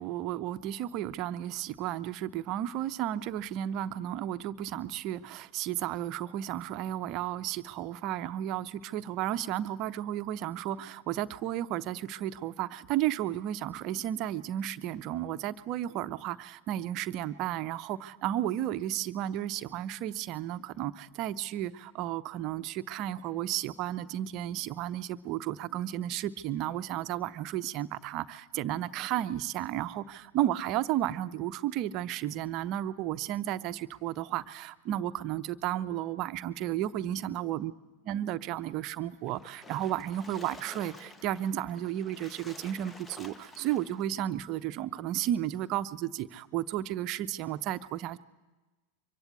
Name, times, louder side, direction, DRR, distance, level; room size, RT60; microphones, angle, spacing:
voice 1, 0.0-37.7 38.1-48.2, right 12 dB, 40° right, 12 dB, 0.8 m, -33 dB
Splash splatter, 39.3-44.1, left 2 dB, 10° left, 1.0 m, -50 dB
24.5 x 23.0 x 8.4 m, 1.2 s
figure-of-eight pair, 90°, 0 cm